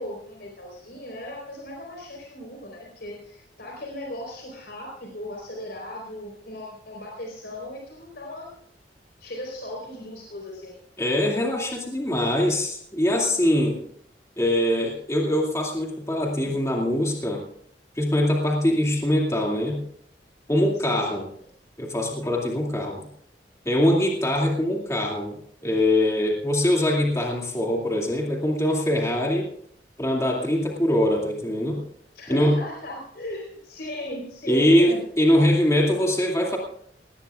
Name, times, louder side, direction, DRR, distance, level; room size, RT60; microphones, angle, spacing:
voice 1, 0.0-8.5 9.2-10.7 20.8-21.2 32.1-35.0, left 1 dB, 65° left, 0 dB, 4.2 m, -37 dB
voice 2, 11.0-13.8 14.4-17.4 18.0-19.8 20.5-21.3 21.8-23.1 23.7-29.5 30.0-31.8 32.3-32.6 34.5-36.6, left 1 dB, 15° left, -1 dB, 2.4 m, -23 dB
19.0 x 18.5 x 2.4 m, 0.65 s
head